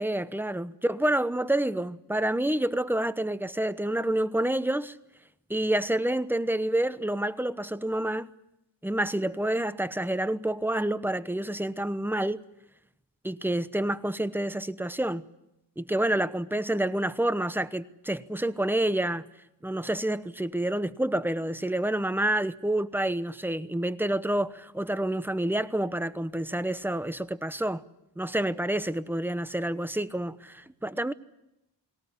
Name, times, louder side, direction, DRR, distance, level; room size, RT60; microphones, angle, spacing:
voice 1, 0.0-4.9 5.5-8.3 8.8-12.4 13.2-15.2 15.8-19.3 19.6-27.8 28.2-31.1, right 1 dB, 5° right, 1.0 m, -28 dB
21.5 x 18.0 x 9.9 m
cardioid pair, 60°, 45 cm